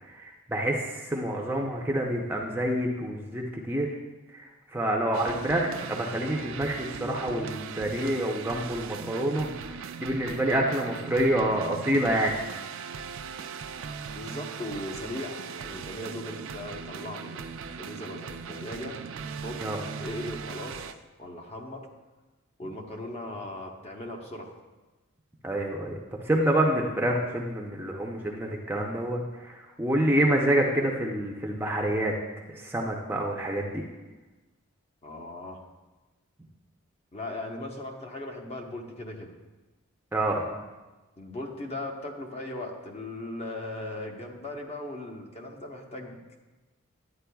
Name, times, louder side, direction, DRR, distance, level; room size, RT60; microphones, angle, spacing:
voice 1, 0.1-4.0 4.7-12.3 19.6-19.8 25.4-25.9 26.2-32.1 32.5-33.8 40.1-40.5, right 1 dB, 10° right, -1 dB, 0.6 m, -27 dB
sound 1, 5.1-20.9, right 6 dB, 65° right, 0.4 m, -39 dB
voice 2, 14.1-19.6 20.0-20.9 21.2-21.8 22.6-24.5 35.0-35.6 37.1-39.3 41.2-46.2, left 1 dB, 30° left, 1 dB, 0.9 m, -38 dB
11.5 x 9.2 x 2.3 m, 1.2 s
head